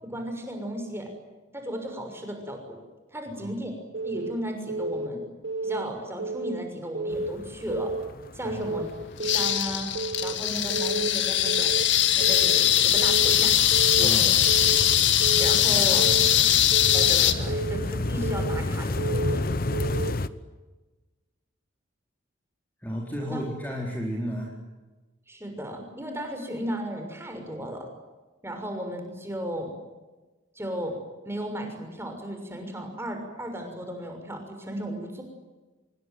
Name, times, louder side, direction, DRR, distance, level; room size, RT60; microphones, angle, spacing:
voice 1, 0.0-1.1 1.5-2.6 3.1-3.7 4.0-5.2 5.6-7.9 8.3-8.9 9.2-9.9 10.2-11.7 12.1-13.6 14.0-14.3 15.4-16.0 16.9-19.4 23.3-23.4 25.3-27.9 28.4-29.7 30.5-31.0 31.2-35.2, equal, 10° right, 4 dB, 6.4 m, -35 dB
voice 2, 3.3-3.6 8.4-8.8 13.9-14.4 15.6-16.5 22.8-24.5, equal, 10° left, -1 dB, 4.2 m, -34 dB
Keyboard (musical) / Alarm, 3.9-4.3 4.7-5.1 5.4-5.8 6.2-6.6 6.9-7.3 7.7-8.1 8.4-8.8 9.2-9.6 9.9-10.3 10.7-11.1 11.4-11.8 12.2-12.6 13.0-13.3 13.7-14.1 14.5-14.8 15.2-15.6 16.0-16.3 16.7-17.1 17.5-17.8 18.2-18.6 19.0-19.4 19.7-20.1, right 3 dB, 60° right, 2.8 m, -31 dB
sound 1, 7.1-20.3, left 2 dB, 45° left, 1.0 m, -33 dB
sound 2, 9.2-17.3, left 11 dB, 65° left, 2.0 m, -21 dB
26.0 x 23.0 x 9.5 m, 1.2 s
head